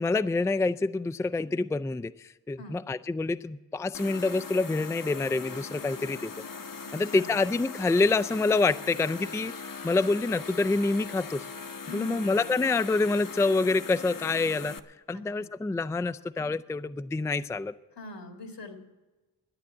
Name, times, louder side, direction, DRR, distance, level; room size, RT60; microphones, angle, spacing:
voice 1, 0.0-6.3 6.9-11.4 11.9-14.8 15.1-17.7, left 3 dB, 5° left, 12 dB, 0.3 m, -27 dB
sound 1, 3.9-14.8, left 5 dB, 50° left, 0.9 m, -40 dB
voice 2, 6.8-7.3 11.9-12.5 15.1-15.5 18.0-18.7, left 3 dB, 75° left, 5 dB, 2.1 m, -43 dB
12.0 x 9.5 x 8.7 m, 1.2 s
cardioid pair, 50°, 42 cm